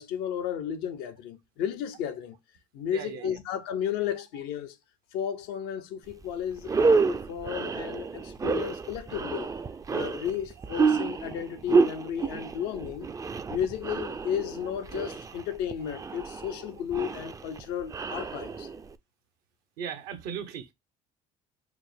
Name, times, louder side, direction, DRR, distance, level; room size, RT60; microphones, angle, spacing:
voice 1, 0.0-2.4 2.7-4.8 5.1-9.5 9.9-13.1 13.5-18.7, left 9 dB, 75° left, 0.6 m, -33 dB
voice 2, 2.9-3.3 19.8-20.7, right 7 dB, 75° right, 0.7 m, -37 dB
sound 1, 6.1-6.2 6.6-18.9, right 4 dB, 20° right, 0.3 m, -29 dB
4.7 x 2.0 x 3.3 m
supercardioid pair, 70°, 16 cm